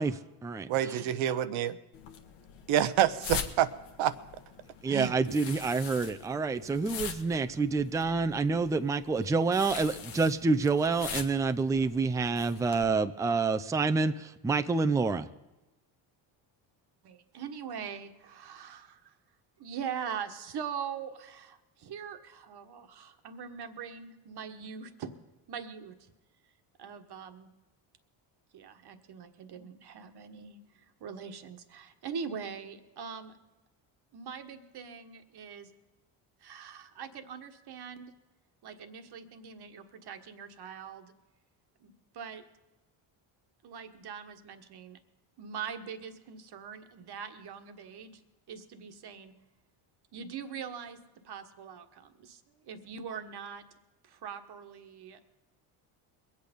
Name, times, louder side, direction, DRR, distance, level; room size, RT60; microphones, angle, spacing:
voice 1, 0.7-1.8 2.7-3.7 4.0-4.1 4.9-5.4, right 11 dB, 80° right, 0.9 m, -27 dB
sound 1, 1.9-12.8, left 7 dB, 90° left, 1.3 m, -43 dB
voice 2, 4.8-15.3, right 4 dB, 5° right, 0.4 m, -28 dB
voice 3, 17.0-19.1 19.6-25.1 25.5-26.0 26.8-27.5 28.5-33.3 34.1-35.7 36.4-38.1 38.6-41.1 41.8-42.4 43.6-45.0 45.4-48.2 48.5-49.3 50.1-53.6 54.0-55.2, right 7 dB, 55° right, 1.4 m, -42 dB
22.0 x 8.5 x 5.2 m
cardioid pair, 90°, 48 cm